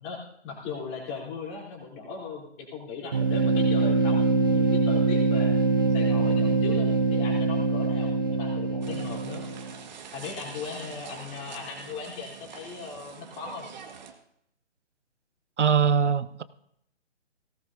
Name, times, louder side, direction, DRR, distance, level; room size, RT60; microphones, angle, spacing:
voice 1, 0.0-9.4 10.1-13.7, left 4 dB, 15° left, -2 dB, 3.6 m, -38 dB
sound 1, 3.1-9.8, right 3 dB, 20° right, 0.5 m, -24 dB
sound 2, 8.8-14.1, right 6 dB, 35° right, 1.8 m, -45 dB
voice 2, 15.6-16.4, right 7 dB, 70° right, 15 dB, 1.0 m, -22 dB
19.0 x 17.5 x 2.7 m, 0.75 s
figure-of-eight pair, 150°, 36 cm